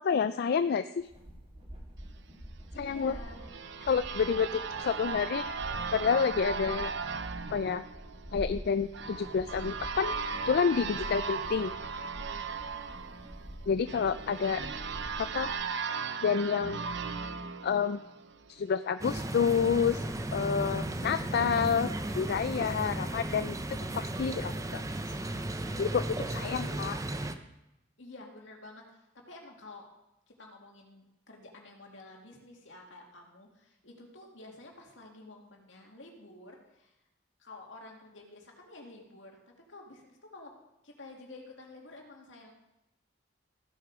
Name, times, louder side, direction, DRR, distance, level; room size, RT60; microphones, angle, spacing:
voice 1, 0.0-1.1 2.8-3.1 3.9-5.5 5.9-6.9 7.5-7.8 8.3-10.1 10.4-11.7 13.7-14.7 15.2-15.5 16.2-16.8 17.6-18.0 18.5-20.0 20.3-24.8 25.8-26.9, left 6 dB, 55° left, 12 dB, 0.3 m, -29 dB
sound 1, 1.0-15.5, equal, 35° right, 3.0 m, -46 dB
voice 2, 2.7-3.5 12.7-13.2 26.3-26.8 28.0-29.8 30.3-36.9 37.4-39.4 39.7-40.5 40.8-42.5, left 2 dB, 75° left, 0 dB, 2.4 m, -50 dB
sound 2, 2.9-18.6, right 5 dB, 65° right, 0.7 m, -37 dB
sound 3, 19.0-27.3, right 1 dB, 15° right, 0.6 m, -35 dB
15.0 x 7.4 x 4.9 m, 0.90 s
head